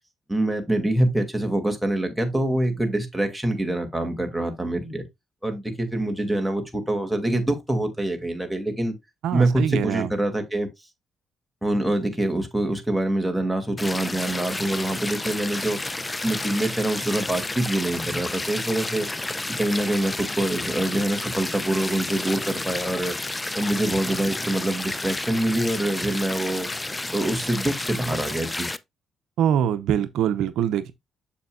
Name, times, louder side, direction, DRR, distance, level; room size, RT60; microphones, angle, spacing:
voice 1, 0.3-5.1 5.4-8.9 9.3-10.7 11.6-19.1 19.6-23.2 23.5-26.7 27.1-28.7, right 1 dB, ahead, 2.5 m, -25 dB
voice 2, 9.2-10.1 29.4-30.9, right 9 dB, 80° right, 0.7 m, -23 dB
sound 1, 13.8-28.8, left 2 dB, 15° left, 0.6 m, -31 dB
7.2 x 6.9 x 2.4 m
cardioid pair, 90°, 0 cm